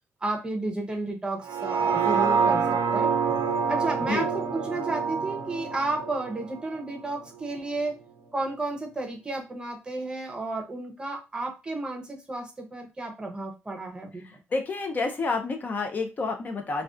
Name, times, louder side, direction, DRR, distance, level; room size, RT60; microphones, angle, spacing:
voice 1, 0.2-3.1 3.7-8.0 8.3-14.2, right 2 dB, 20° right, 3 dB, 0.6 m, -32 dB
sound 1, 1.4-7.6 8.0-8.1, right 5 dB, 65° right, 0.4 m, -27 dB
voice 2, 14.2-16.8, left 3 dB, 35° left, 5 dB, 0.4 m, -29 dB
2.4 x 2.2 x 2.4 m, 0.27 s
cardioid pair, 125°, 5 cm